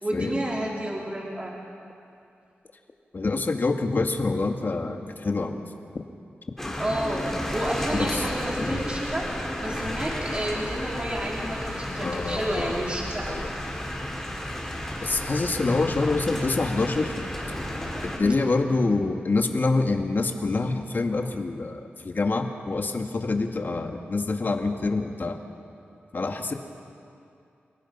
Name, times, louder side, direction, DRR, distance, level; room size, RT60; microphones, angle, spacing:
voice 1, 0.0-1.6 6.8-9.3 9.6-13.4, right 1 dB, 30° right, -3 dB, 4.1 m, -30 dB
voice 2, 3.1-5.6 7.9-8.2 8.6-8.8 12.0-12.8 13.3-13.5 15.0-17.1 18.0-25.4 26.1-26.5, left 3 dB, 50° left, 4 dB, 1.9 m, -26 dB
sound 1, 6.6-18.2, left 1 dB, 10° left, 4.5 m, -32 dB
29.0 x 17.5 x 5.5 m, 2.5 s
cardioid pair, 65°, 4 cm